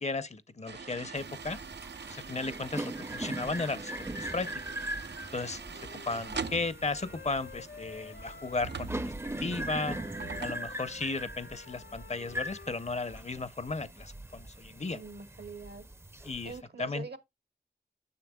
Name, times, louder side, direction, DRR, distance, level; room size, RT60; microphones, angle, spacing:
voice 1, 0.0-1.6 2.1-4.5 5.3-9.1 9.4-10.0 10.4-15.0 16.2-16.5 16.8-17.0, left 3 dB, 40° left, 0.6 m, -35 dB
sound 1, 0.7-10.5, right 5 dB, 90° right, 0.5 m, -43 dB
sound 2, 1.2-16.6, right 1 dB, 15° right, 0.5 m, -41 dB
voice 2, 2.2-2.6 5.9-6.2 14.9-15.9 16.4-17.2, right 4 dB, 75° right, 1.0 m, -45 dB
Wind instrument woodwind instrument, 5.2-8.9 9.2-13.2, left 5 dB, 90° left, 0.6 m, -51 dB
9.5 x 6.7 x 2.2 m
wide cardioid pair, 60°, 17 cm